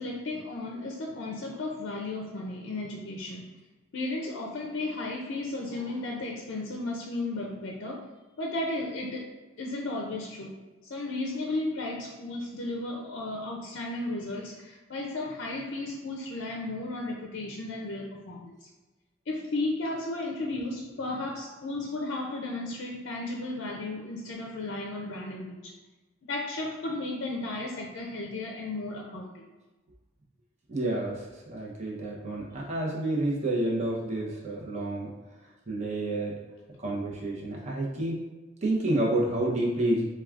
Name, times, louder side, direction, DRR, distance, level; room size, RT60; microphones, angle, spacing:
voice 1, 0.0-3.5 3.9-8.1 8.4-9.3 9.6-10.5 10.8-18.7 19.3-25.7 26.3-29.3, left 2 dB, 60° left, -1 dB, 0.4 m, -34 dB
voice 2, 30.7-35.1 35.7-36.3 36.8-38.2 38.6-40.1, right 1 dB, 35° right, -3 dB, 0.7 m, -29 dB
4.6 x 2.3 x 2.4 m, 1.2 s
head